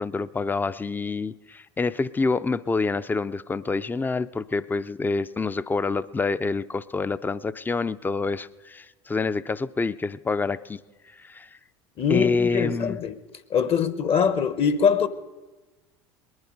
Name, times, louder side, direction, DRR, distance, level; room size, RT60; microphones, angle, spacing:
voice 1, 0.0-10.8 11.1-11.5 12.1-13.0, left 4 dB, 15° left, 15 dB, 0.4 m, -27 dB
voice 2, 12.0-13.2 13.5-15.1, left 7 dB, 45° left, 14 dB, 0.9 m, -23 dB
19.5 x 11.0 x 5.2 m, 1.2 s
hypercardioid pair, 80°, 14 cm